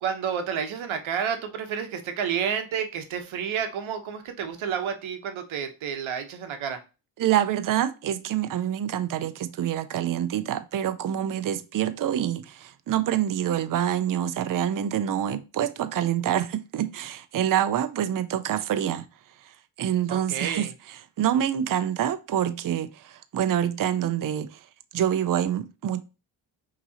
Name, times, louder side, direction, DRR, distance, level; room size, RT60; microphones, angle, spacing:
voice 1, 0.0-6.8 20.1-20.7, right 7 dB, 80° right, 1.0 m, -30 dB
voice 2, 7.2-19.1 19.4-24.7 24.9-26.0, right 10 dB, 45° right, 0.5 m, -26 dB
5.5 x 3.0 x 2.7 m
cardioid pair, 100°, 47 cm